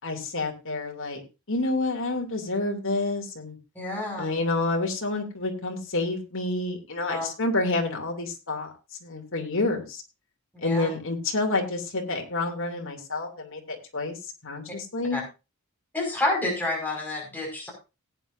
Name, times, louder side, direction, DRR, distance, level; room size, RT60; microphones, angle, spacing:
voice 1, 0.0-1.2 1.5-3.6 4.2-8.7 9.0-10.0 10.6-14.2 14.4-15.2, left 2 dB, 60° left, 2 dB, 2.9 m, -28 dB
voice 2, 3.8-4.3 7.1-7.3 10.5-10.9 15.1-15.2 15.9-17.7, left 2 dB, 10° left, -2 dB, 5.4 m, -29 dB
18.0 x 9.2 x 2.7 m, 0.28 s
head